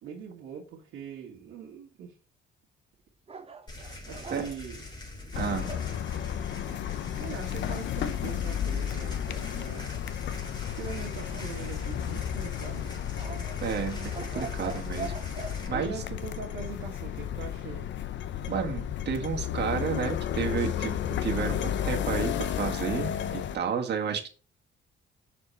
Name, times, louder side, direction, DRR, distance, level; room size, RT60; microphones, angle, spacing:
voice 1, 0.0-2.1 4.1-4.8 6.8-6.9 7.1-10.5 10.8-12.9 15.7-17.9, right 6 dB, 90° right, -5 dB, 1.8 m, -42 dB
sound 1, 3.3-5.9 11.3-12.2 13.2-15.9, right 5 dB, 30° right, 0.9 m, -42 dB
sound 2, 3.7-15.7, left 2 dB, 20° left, 3.6 m, -43 dB
sound 3, 5.3-23.6, left 10 dB, 65° left, 0.7 m, -33 dB
voice 2, 5.3-5.7 13.6-15.2 15.7-16.0 18.5-24.3, right 7 dB, 60° right, 3 dB, 1.6 m, -31 dB
6.6 x 4.3 x 4.4 m, 0.35 s
cardioid pair, 90°, 20 cm